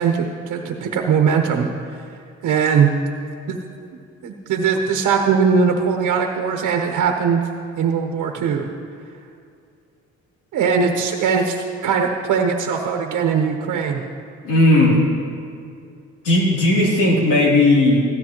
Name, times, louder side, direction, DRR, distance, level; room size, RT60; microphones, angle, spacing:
voice 1, 0.0-1.7 2.4-2.9 3.5-3.6 4.2-7.4 7.8-8.7 10.5-14.0, right 6 dB, 75° right, 2 dB, 1.0 m, -20 dB
voice 2, 14.4-15.0 16.2-18.0, left 2 dB, 85° left, -4 dB, 3.0 m, -15 dB
16.0 x 13.0 x 3.0 m, 2.4 s
cardioid pair, 115°, 31 cm